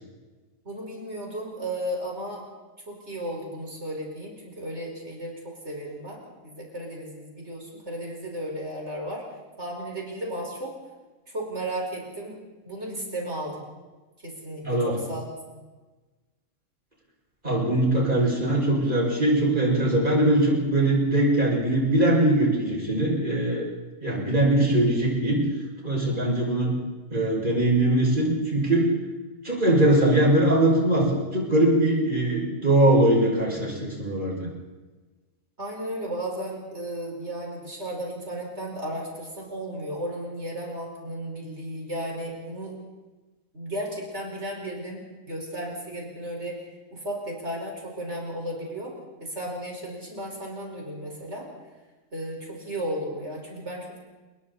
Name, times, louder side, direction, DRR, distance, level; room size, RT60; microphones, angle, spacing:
voice 1, 0.7-2.4 2.9-9.2 9.6-10.8 11.3-12.4 12.6-13.6 14.2-15.3 35.6-42.8 43.5-46.6 46.9-48.9 49.2-51.5 52.1-54.0, right 1 dB, 55° right, -1 dB, 5.6 m, -34 dB
voice 2, 14.6-15.0 17.4-23.7 24.0-25.4 25.8-26.7 27.1-28.9 29.4-34.5, right 1 dB, 35° right, -2 dB, 6.5 m, -21 dB
29.5 x 21.5 x 4.3 m, 1.2 s
omnidirectional pair, 1.4 m